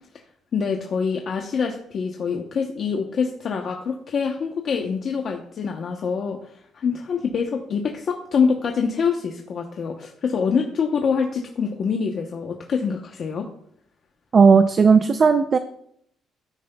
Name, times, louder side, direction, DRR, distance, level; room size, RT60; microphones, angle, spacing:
voice 1, 0.5-6.4 6.7-13.5, left 6 dB, 40° left, 2 dB, 0.8 m, -25 dB
voice 2, 14.3-15.6, right 5 dB, 30° right, 9 dB, 0.4 m, -15 dB
12.5 x 9.4 x 2.2 m, 0.70 s
cardioid pair, 170°, 0 cm